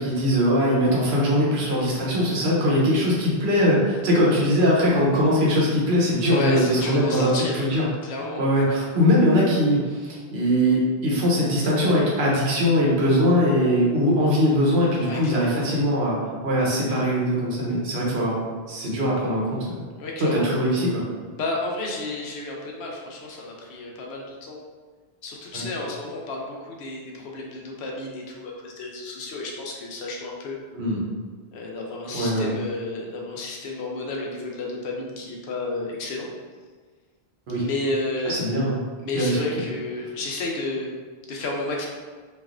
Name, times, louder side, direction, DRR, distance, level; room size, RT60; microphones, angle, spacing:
voice 1, 0.0-7.9 8.4-18.4 18.7-19.8 20.2-21.0 25.5-25.6 30.7-31.0 32.1-32.5 37.5-37.6 38.2-38.8 39.1-39.4, equal, 80° right, -4 dB, 1.1 m, -21 dB
voice 2, 6.3-7.6 8.0-8.4 15.0-15.6 19.9-20.5 21.4-24.6 25.2-30.6 31.5-36.3 37.6-38.4 39.0-40.9 41.3-41.9, left 2 dB, 85° left, -1 dB, 0.9 m, -31 dB
3.2 x 2.4 x 2.4 m, 1.5 s
omnidirectional pair, 1.1 m